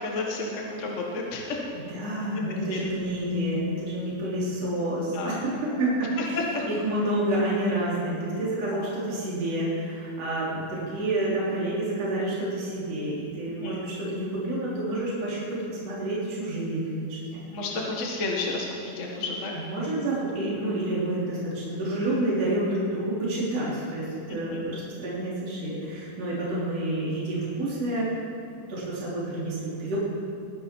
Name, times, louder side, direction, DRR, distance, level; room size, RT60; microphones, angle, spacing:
voice 1, 0.0-1.6 2.7-2.8 5.1-5.4 6.2-6.6 8.7-8.9 13.6-13.8 17.5-19.5 24.3-24.7, left 3 dB, 40° left, -2 dB, 1.1 m, -31 dB
voice 2, 1.7-17.4 19.5-28.2 28.7-30.0, right 1 dB, 50° right, -7 dB, 4.4 m, -29 dB
21.0 x 10.5 x 4.6 m, 2.7 s
omnidirectional pair, 3.7 m